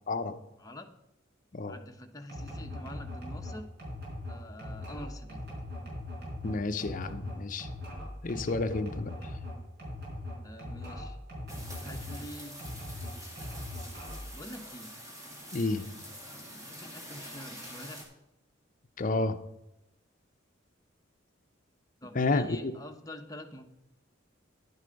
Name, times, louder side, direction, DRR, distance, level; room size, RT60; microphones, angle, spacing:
voice 1, 0.1-0.4 1.5-1.8 6.4-7.7 8.2-9.1 15.5-15.8 19.0-19.4 22.1-22.7, left 3 dB, 40° left, 11 dB, 0.6 m, -30 dB
voice 2, 0.6-0.9 1.7-3.7 4.3-5.4 10.4-11.2 11.8-12.6 14.3-14.9 16.5-18.0 22.0-23.7, left 1 dB, 20° left, 4 dB, 1.0 m, -46 dB
sound 1, 2.3-12.2 12.6-14.4, left 1 dB, 55° right, 4.5 m, -40 dB
sound 2, 11.5-18.0, equal, 15° right, 2.4 m, -46 dB
11.0 x 8.0 x 5.2 m, 0.88 s
head